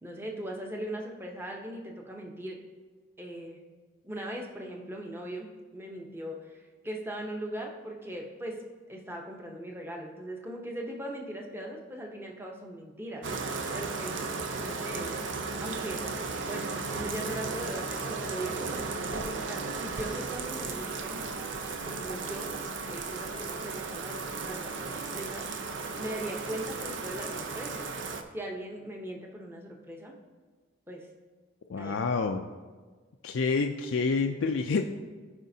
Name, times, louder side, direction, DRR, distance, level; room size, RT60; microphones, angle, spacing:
voice 1, 0.0-2.6 3.2-3.6 4.0-8.6 8.9-13.3 13.7-14.2 14.6-15.2 15.6-21.3 21.9-22.5 22.9-25.5 26.0-27.9 28.3-30.2 30.9-31.1 31.8-31.9, right 1 dB, 10° right, 0 dB, 0.8 m, -39 dB
Bathtub (filling or washing), 13.2-28.2, right 4 dB, 65° right, 0.6 m, -35 dB
voice 2, 31.7-32.5 33.2-34.8, left 4 dB, 75° left, 4 dB, 0.4 m, -28 dB
15.0 x 5.1 x 2.7 m, 1.4 s
head